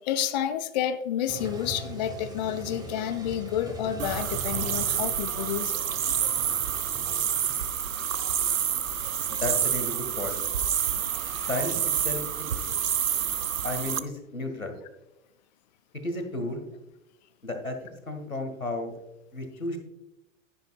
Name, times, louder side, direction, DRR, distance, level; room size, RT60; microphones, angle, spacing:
voice 1, 0.0-5.8 10.9-11.5, left 10 dB, 35° left, 0.4 m, -30 dB
Toilet flush, 1.3-7.6, right 2 dB, 10° right, 1.1 m, -40 dB
sound 1, 4.0-14.0, right 9 dB, 75° right, 0.6 m, -28 dB
voice 2, 9.3-10.4 11.5-11.7 12.0-12.2 13.6-14.8 16.0-16.6 17.4-17.8 18.1-18.9 19.3-19.8, left 2 dB, 90° left, 1.8 m, -32 dB
10.5 x 10.0 x 2.4 m
figure-of-eight pair, 105°, 40 cm